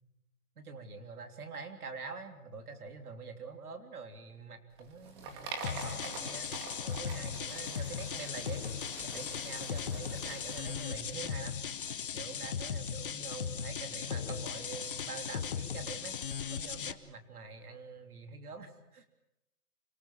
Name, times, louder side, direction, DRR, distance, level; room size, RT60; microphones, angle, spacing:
voice 1, 0.6-6.5 6.9-8.7 9.0-11.6 12.1-16.2 16.5-19.1, right 4 dB, 80° right, 6 dB, 3.4 m, -45 dB
sound 1, 4.7-11.9, right 3 dB, 20° right, 2.2 m, -46 dB
sound 2, 5.6-16.9, left 7 dB, 35° left, 0.9 m, -38 dB
25.5 x 19.0 x 7.4 m, 0.86 s
hypercardioid pair, 175°, 44 cm